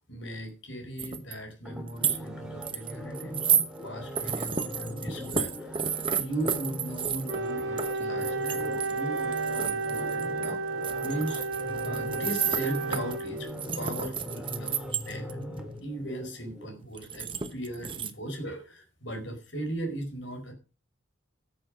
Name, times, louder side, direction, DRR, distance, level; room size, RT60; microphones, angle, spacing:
voice 1, 0.1-5.9 6.2-10.6 11.0-11.4 11.8-13.5 13.7-15.3 15.8-20.5, right 1 dB, 60° left, 4 dB, 4.8 m, -37 dB
sound 1, 1.0-1.3 1.7-2.2 2.6-3.7 4.1-10.5 10.8-15.3 16.9-18.1, right 7 dB, 25° right, 1.0 m, -31 dB
sound 2, 1.6-16.7 17.1-17.2, equal, 5° right, 2.1 m, -41 dB
Wind instrument woodwind instrument, 7.3-13.6, right 3 dB, 65° right, 1.3 m, -32 dB
13.5 x 7.8 x 6.2 m, 0.35 s
head